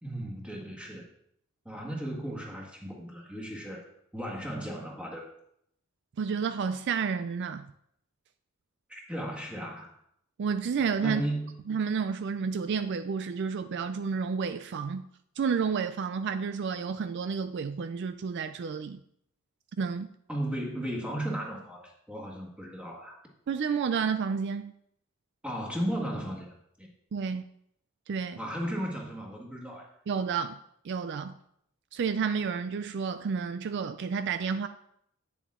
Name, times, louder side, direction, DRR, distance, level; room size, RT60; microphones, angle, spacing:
voice 1, 0.0-1.1 1.6-3.8 4.1-5.3 8.9-9.9 11.0-11.6 20.3-23.2 25.4-26.9 28.4-29.9, right 1 dB, 5° right, 1.8 m, -35 dB
voice 2, 6.2-7.7 10.4-11.2 11.7-15.1 15.4-19.0 19.8-20.1 23.5-24.7 27.1-27.4 28.1-28.4 30.1-30.6 30.8-31.3 31.9-34.7, right 6 dB, 55° right, 0.4 m, -30 dB
9.1 x 7.0 x 3.6 m
head